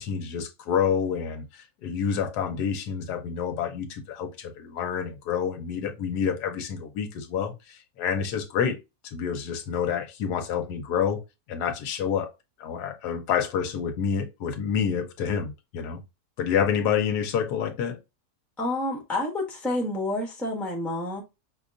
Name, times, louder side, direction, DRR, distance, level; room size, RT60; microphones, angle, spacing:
voice 1, 0.0-8.8 9.0-11.2 11.5-12.3 12.6-16.0 16.4-18.0, left 7 dB, 90° left, 1.2 m, -28 dB
voice 2, 18.6-21.2, left 1 dB, ahead, 0.8 m, -29 dB
5.0 x 2.3 x 2.4 m
omnidirectional pair, 1.7 m